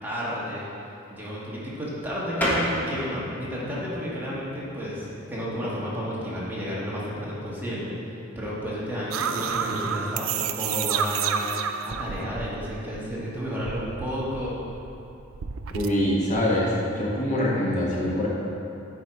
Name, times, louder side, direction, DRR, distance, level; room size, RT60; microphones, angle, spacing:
voice 1, 0.0-14.6, equal, 10° right, -7 dB, 1.4 m, -32 dB
sound 1, 2.4-12.6, equal, 10° left, 1.3 m, -36 dB
sound 2, 9.1-13.1 13.4-15.9, right 7 dB, 75° right, 0.4 m, -30 dB
voice 2, 15.7-18.3, left 1 dB, 40° left, -5 dB, 1.3 m, -24 dB
9.3 x 4.6 x 4.7 m, 2.8 s
head